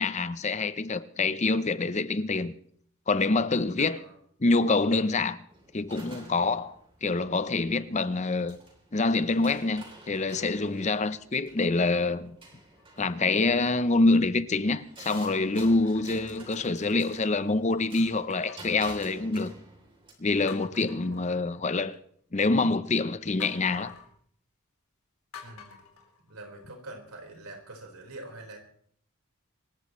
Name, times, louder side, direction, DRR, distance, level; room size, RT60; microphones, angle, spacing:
voice 1, 0.0-2.6 3.1-4.0 4.4-5.4 5.7-8.6 8.9-12.4 13.0-19.5 20.2-22.0 22.3-23.9, left 3 dB, 30° left, 0.6 m, -26 dB
voice 2, 3.8-4.2 21.1-21.4 25.4-25.8 26.3-28.6, right 2 dB, 90° right, 4.5 m, -45 dB
sound 1, 5.5-20.1, right 2 dB, 25° right, 3.3 m, -50 dB
sound 2, 12.7-13.2 13.9-14.0 15.7-17.1 18.3-19.7 20.1-20.2 20.5-21.9 23.4-24.1 25.3-26.9 27.3-27.4, left 6 dB, 80° left, 4.0 m, -50 dB
26.5 x 15.0 x 3.1 m
head